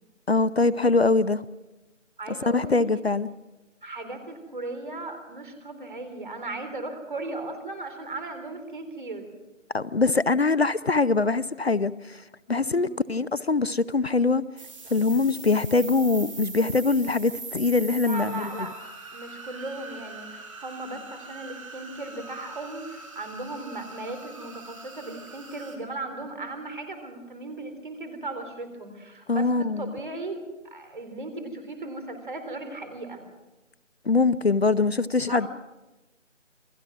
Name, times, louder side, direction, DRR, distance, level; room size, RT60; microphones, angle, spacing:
voice 1, 0.3-1.4 2.5-3.3 9.7-12.2 12.5-14.4 14.9-18.6 29.3-29.9 34.1-35.5, left 3 dB, 55° left, 18 dB, 0.7 m, -23 dB
voice 2, 2.2-3.0 3.8-9.3 12.7-12.9 18.0-18.7 19.1-29.5 29.8-33.2 35.3-35.5, right 2 dB, 40° right, 7 dB, 3.8 m, -37 dB
sound 1, 14.6-25.8, right 3 dB, 25° right, 2.7 m, -42 dB
28.0 x 19.0 x 6.1 m, 1.1 s
figure-of-eight pair, 170°, 38 cm